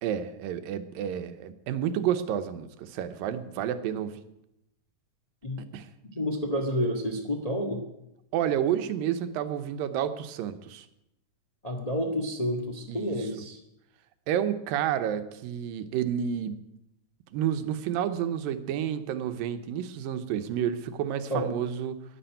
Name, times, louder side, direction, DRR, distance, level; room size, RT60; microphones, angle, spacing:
voice 1, 0.0-4.2 5.6-5.9 8.3-10.9 12.9-13.2 14.3-16.6 17.3-22.0, right 9 dB, 90° right, 10 dB, 2.7 m, -30 dB
voice 2, 6.1-7.8 11.6-13.6 21.3-21.5, equal, 25° left, 3 dB, 0.7 m, -29 dB
11.5 x 11.0 x 9.0 m, 0.84 s
omnidirectional pair, 3.9 m